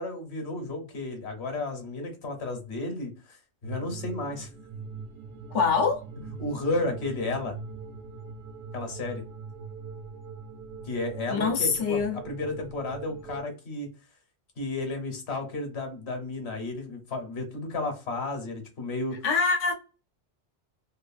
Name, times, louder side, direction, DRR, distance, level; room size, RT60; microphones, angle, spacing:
voice 1, 0.0-4.5 6.4-7.6 8.7-9.2 10.8-13.9 14.6-19.2, left 2 dB, 65° left, 1.2 m, -33 dB
sound 1, 3.6-13.4, right 4 dB, 75° right, 1.1 m, -42 dB
voice 2, 5.5-6.0 11.3-12.2 19.2-19.7, left 5 dB, 90° left, 1.1 m, -24 dB
3.0 x 2.4 x 2.4 m
omnidirectional pair, 1.2 m